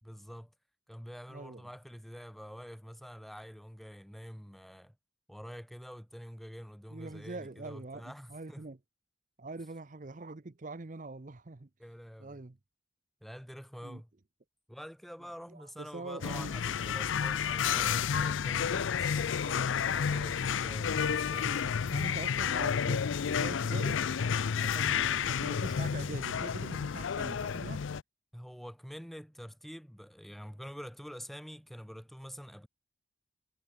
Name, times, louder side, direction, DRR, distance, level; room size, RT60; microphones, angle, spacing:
voice 1, 0.0-0.5 0.9-4.9 5.3-8.7 11.8-12.4 13.2-14.1 14.7-21.8 28.3-32.7, equal, ahead, 1.2 m, -47 dB
voice 2, 1.3-1.6 6.9-8.8 9.4-11.7 12.2-12.6 13.8-14.0 15.5-16.5 21.8-24.0 24.6-27.8, right 2 dB, 40° right, 0.7 m, -43 dB
sound 1, 16.2-28.0, left 7 dB, 80° left, 0.5 m, -31 dB
head